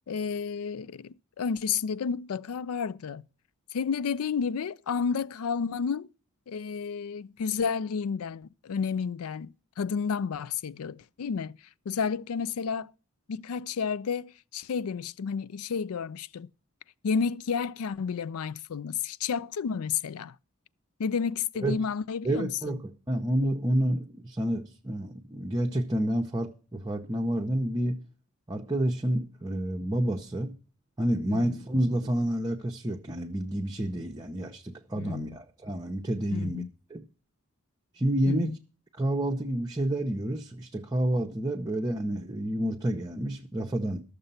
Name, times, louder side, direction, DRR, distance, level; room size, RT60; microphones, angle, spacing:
voice 1, 0.1-3.2 3.7-6.1 6.5-11.6 11.9-12.9 13.3-16.5 17.0-20.4 21.0-22.8 31.3-31.5 35.0-35.4 36.3-36.7 38.3-38.6, left 6 dB, 85° left, 0.4 m, -31 dB
voice 2, 22.2-22.8 23.1-28.0 28.5-30.5 31.0-36.6 36.9-37.0 38.0-38.5 39.0-44.0, right 1 dB, 20° right, 0.8 m, -29 dB
13.5 x 6.8 x 5.5 m
head